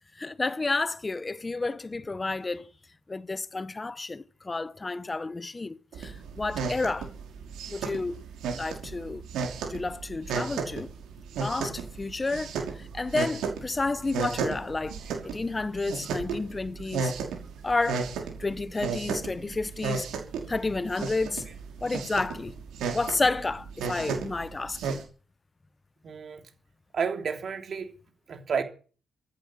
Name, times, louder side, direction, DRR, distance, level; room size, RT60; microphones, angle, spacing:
voice 1, 0.1-2.7 3.1-7.1 7.7-8.2 8.5-9.2 9.6-10.9 11.4-15.0 15.2-17.1 17.6-18.1 18.4-20.1 20.5-21.4 21.8-22.6 22.9-25.0, left 3 dB, 20° left, 1.0 m, -31 dB
sound 1, 5.9-25.0, right 5 dB, 85° right, 5.7 m, -34 dB
voice 2, 26.0-26.4 26.9-27.9 28.3-28.6, right 6 dB, 50° right, 3.1 m, -30 dB
15.0 x 11.5 x 7.6 m
cardioid pair, 100°, 0 cm